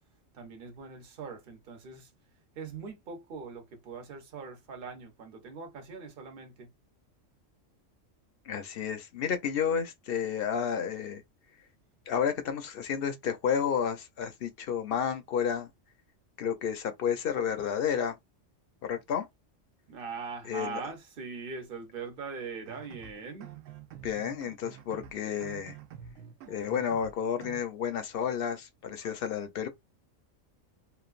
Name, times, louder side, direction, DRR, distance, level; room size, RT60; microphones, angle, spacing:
voice 1, 0.3-2.1 2.6-6.7 19.9-23.5, right 5 dB, 50° right, 0.9 m, -41 dB
voice 2, 8.5-11.2 12.1-15.7 16.4-18.2 18.8-19.3 20.4-20.9 24.0-25.7 26.5-29.7, left 7 dB, 55° left, 0.7 m, -31 dB
sound 1, 22.6-27.6, right 9 dB, 80° right, 0.9 m, -48 dB
3.1 x 2.3 x 2.4 m
omnidirectional pair, 1.3 m